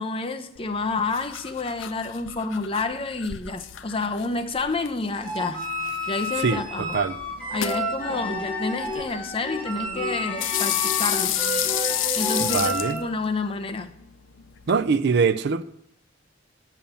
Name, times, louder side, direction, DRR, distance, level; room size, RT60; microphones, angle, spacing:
voice 1, 0.0-5.6 6.1-7.0 7.5-11.4 12.2-13.9, left 3 dB, 30° left, 0.6 m, -29 dB
sound 1, 0.5-14.8, left 12 dB, 80° left, 0.5 m, -32 dB
sound 2, 5.2-13.0, equal, 5° left, 3.9 m, -30 dB
voice 2, 6.4-7.2 12.4-13.0 14.7-15.6, right 5 dB, 60° right, 0.4 m, -23 dB
7.1 x 7.1 x 6.8 m
head